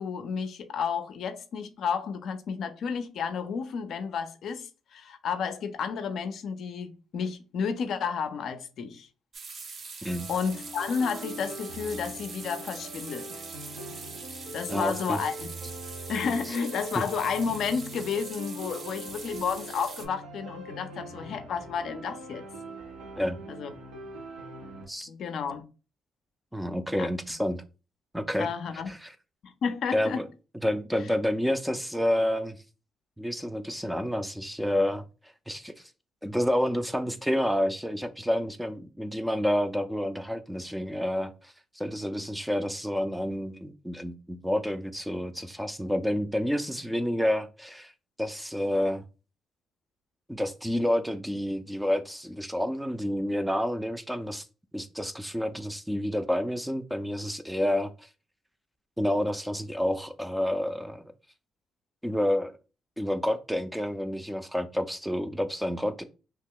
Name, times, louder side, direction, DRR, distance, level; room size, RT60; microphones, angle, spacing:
voice 1, 0.0-9.1 10.3-13.3 14.5-15.3 16.1-22.4 23.5-23.7 25.1-25.6 27.0-27.1 28.4-28.9 29.4-30.2, left 6 dB, 70° left, 0.4 m, -31 dB
sound 1, 9.3-20.1, right 4 dB, 50° right, 0.6 m, -43 dB
sound 2, 10.1-24.8, right 1 dB, 85° right, 0.7 m, -42 dB
voice 2, 14.7-15.2 23.2-23.4 24.9-25.1 26.5-27.6 28.1-28.5 28.9-29.1 29.9-30.3 30.6-32.6 33.2-35.0 35.5-35.7 36.2-47.9 48.2-49.0 50.3-54.4 54.7-58.1 59.0-61.0 62.0-62.5 63.0-66.0, equal, 5° right, 0.4 m, -29 dB
2.9 x 2.2 x 3.6 m
cardioid pair, 90°, 0 cm